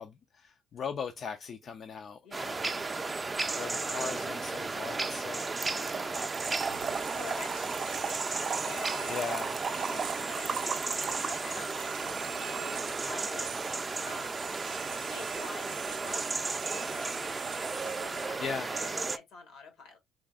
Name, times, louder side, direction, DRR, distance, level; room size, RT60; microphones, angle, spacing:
voice 1, 0.0-2.7 3.6-5.7 9.1-9.5 18.4-18.7, left 6 dB, 55° left, 0.3 m, -39 dB
voice 2, 2.2-2.6 5.7-6.2 6.5-8.2 8.6-11.9 12.3-13.7 14.0-14.5 14.8-17.5 17.8-20.0, left 4 dB, 80° left, 1.3 m, -47 dB
sound 1, 2.3-19.2, right 3 dB, 25° right, 0.3 m, -34 dB
Trickle dribble / Fill (with liquid), 5.6-12.7, right 6 dB, 50° right, 0.7 m, -38 dB
sound 2, 6.1-18.9, right 9 dB, 85° right, 0.5 m, -44 dB
3.6 x 3.2 x 2.3 m
supercardioid pair, 70°, 0 cm